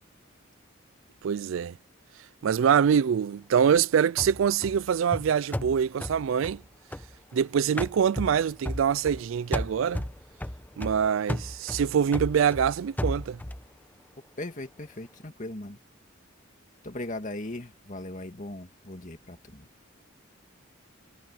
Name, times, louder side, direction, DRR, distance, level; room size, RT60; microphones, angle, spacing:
voice 1, 1.2-1.8 2.4-6.6 7.3-10.1 10.8-13.4, right 7 dB, 70° right, 0.3 m, -24 dB
sound 1, 4.2-7.4 7.8-9.2 9.5-13.7, left 1 dB, 10° left, 0.8 m, -35 dB
voice 2, 14.4-15.8 16.8-19.7, left 1 dB, 40° left, 2.2 m, -38 dB
head